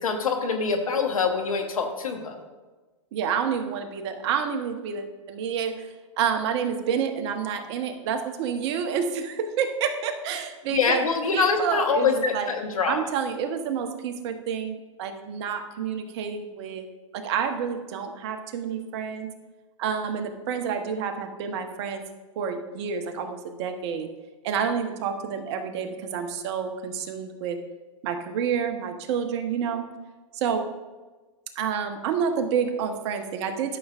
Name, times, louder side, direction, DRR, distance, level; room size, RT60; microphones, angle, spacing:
voice 1, 0.0-2.4 10.7-13.0, left 5 dB, 85° left, 5 dB, 1.2 m, -24 dB
voice 2, 3.1-12.5 12.9-16.8 17.1-19.3 19.8-22.0 22.4-24.1 24.4-27.6 28.0-29.9 30.3-30.6 31.5-33.8, right 7 dB, 55° right, 6 dB, 1.0 m, -29 dB
13.0 x 6.5 x 2.5 m, 1.3 s
hypercardioid pair, 115°, 17 cm